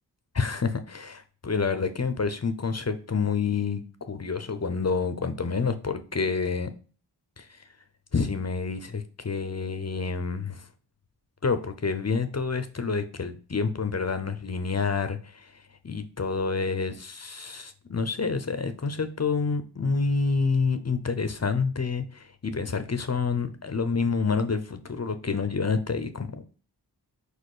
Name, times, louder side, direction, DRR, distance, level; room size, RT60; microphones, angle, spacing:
voice 1, 0.4-6.7 7.4-7.6 8.1-10.7 11.4-15.5 15.8-26.5, left 4 dB, 35° left, 10 dB, 0.7 m, -28 dB
4.9 x 4.3 x 4.9 m, 0.38 s
wide cardioid pair, 85°, 42 cm